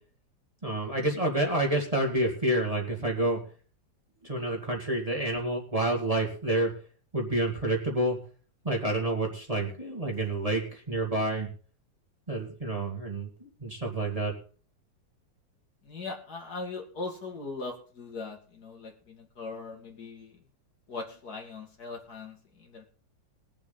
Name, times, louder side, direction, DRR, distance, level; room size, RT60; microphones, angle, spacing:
voice 1, 0.6-3.4 4.2-6.7 7.1-8.2 8.6-11.5 12.3-14.3, right 1 dB, 20° right, -1 dB, 2.3 m, -28 dB
voice 2, 15.8-20.3 20.9-22.8, left 3 dB, 55° left, 1 dB, 2.6 m, -40 dB
21.5 x 7.3 x 3.9 m, 0.41 s
omnidirectional pair, 2.0 m